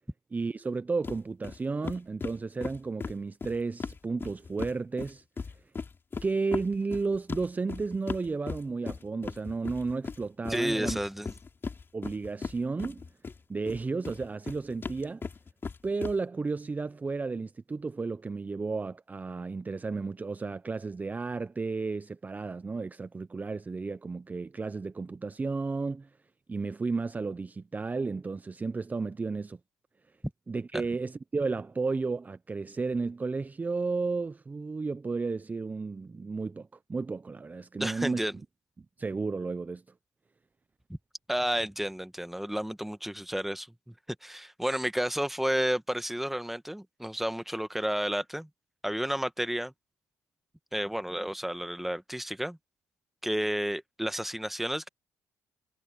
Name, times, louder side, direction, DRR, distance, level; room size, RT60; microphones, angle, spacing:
voice 1, 0.3-5.2 6.2-11.0 11.9-13.0 13.5-15.2 15.8-26.1 26.5-29.6 30.5-38.2 39.0-39.8, right 4 dB, 25° right, 0.6 m, -33 dB
sound 1, 1.0-1.2 1.4-1.6 1.8-4.7 5.0-13.4 13.7-16.1, left 5 dB, 35° left, 3.5 m, -37 dB
voice 2, 10.5-11.3 30.7-30.8 37.8-38.3 41.3-43.9 44.2-48.5 48.8-49.7 50.7-52.6 53.2-54.9, equal, 5° right, 1.4 m, -31 dB
supercardioid pair, 65°, 6 cm